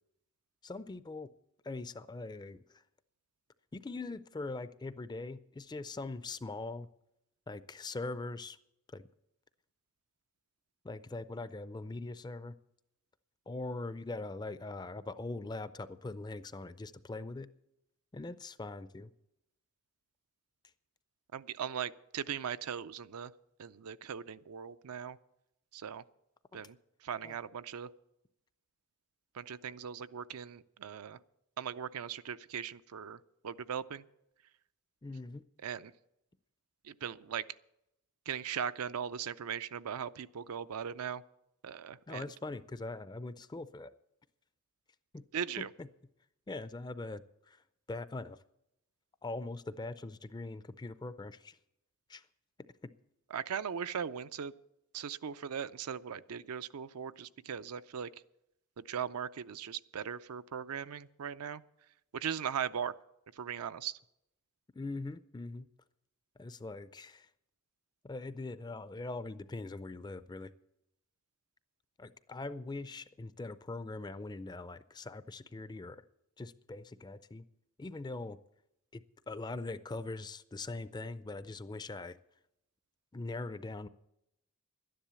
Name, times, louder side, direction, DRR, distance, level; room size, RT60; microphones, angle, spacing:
voice 1, 0.6-1.3 1.6-2.6 3.7-6.9 7.5-8.6 8.9-9.0 10.8-12.5 13.5-17.5 18.1-19.1 26.5-26.6 27.2-27.4 35.0-35.4 42.1-43.9 45.1-45.2 45.6-45.9 46.5-47.6 47.9-48.4 49.2-51.6 52.1-52.2 64.8-65.7 66.4-67.3 68.0-70.5 72.0-76.0 76.4-77.5 77.8-78.4 78.9-82.2 83.1-83.9, left 2 dB, 20° left, 14 dB, 0.4 m, -42 dB
voice 2, 21.3-23.3 23.6-25.2 25.7-26.0 26.5-26.8 27.0-27.9 29.4-31.2 31.6-33.2 33.4-34.0 35.6-35.9 36.9-37.4 38.3-41.2 41.6-42.2 45.3-45.7 53.3-54.5 54.9-58.1 58.8-61.6 62.1-62.9 63.4-63.9, right 7 dB, 80° right, 13 dB, 0.5 m, -39 dB
12.5 x 10.5 x 6.9 m, 0.84 s
head